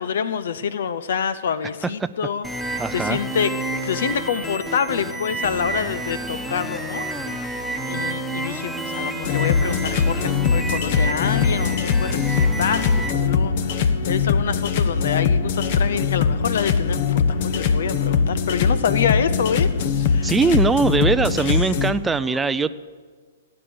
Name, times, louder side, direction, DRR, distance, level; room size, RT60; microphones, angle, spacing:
voice 1, 0.0-3.5 3.8-19.7 20.0-20.4, left 7 dB, 65° left, 14 dB, 0.6 m, -27 dB
sound 1, 2.4-13.1, right 1 dB, 5° left, 1.3 m, -30 dB
voice 2, 2.8-3.2 20.2-22.7, right 4 dB, 10° right, 11 dB, 0.5 m, -21 dB
sound 2, 9.2-21.9, left 6 dB, 50° left, 1.1 m, -21 dB
17.5 x 8.6 x 7.0 m, 1.5 s
hypercardioid pair, 120°, 0 cm